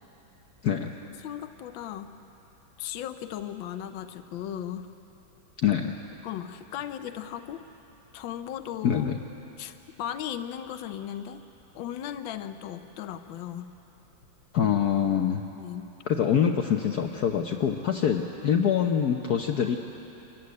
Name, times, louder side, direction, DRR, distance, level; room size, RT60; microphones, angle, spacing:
voice 1, 0.6-0.9 5.6-5.9 8.8-9.2 14.5-15.4 16.1-19.8, left 8 dB, 60° left, 3 dB, 1.3 m, -25 dB
voice 2, 1.2-2.1 2.8-4.9 6.2-7.7 8.1-9.1 9.6-11.4 11.7-13.7 15.5-15.9, left 10 dB, 80° left, 8 dB, 1.5 m, -37 dB
25.5 x 15.0 x 9.6 m, 3.0 s
omnidirectional pair, 2.1 m